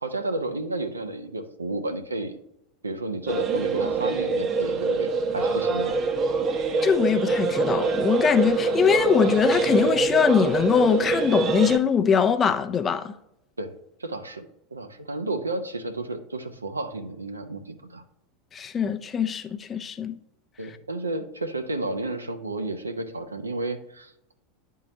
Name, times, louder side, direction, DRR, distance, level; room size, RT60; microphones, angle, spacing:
voice 1, 0.0-2.4 2.8-5.9 13.6-13.7 14.0-18.0 20.6-24.3, right 2 dB, 90° right, 0.6 m, -32 dB
sound 1, 3.3-11.8, right 4 dB, 35° right, 0.7 m, -24 dB
voice 2, 6.8-13.1 18.5-20.2, left 7 dB, 25° left, 0.5 m, -22 dB
10.5 x 3.7 x 2.8 m
figure-of-eight pair, 85°, 0 cm